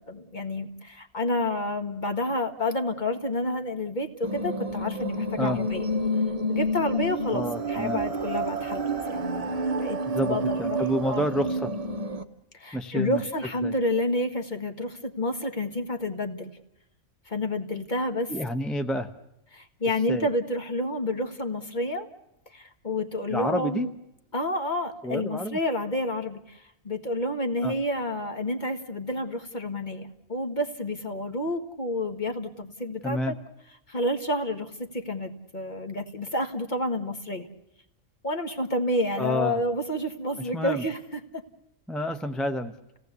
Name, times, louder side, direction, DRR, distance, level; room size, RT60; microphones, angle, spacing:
voice 1, 0.0-5.9 6.5-11.3 12.5-16.5 17.3-18.3 19.5-22.1 22.5-23.9 24.3-33.4 33.9-37.5 38.2-41.0 41.3-41.4, left 1 dB, 35° left, 4 dB, 1.7 m, -29 dB
sound 1, 4.2-12.2, right 1 dB, 30° right, 1.0 m, -29 dB
voice 2, 7.3-8.0 10.1-11.7 12.7-13.2 13.6-13.7 18.3-19.1 20.1-20.3 23.3-23.9 25.0-25.6 27.6-27.7 33.0-33.4 39.2-39.6 40.4-40.8 41.9-42.7, equal, ahead, 7 dB, 0.8 m, -29 dB
29.0 x 18.0 x 8.2 m, 0.88 s
omnidirectional pair, 1.4 m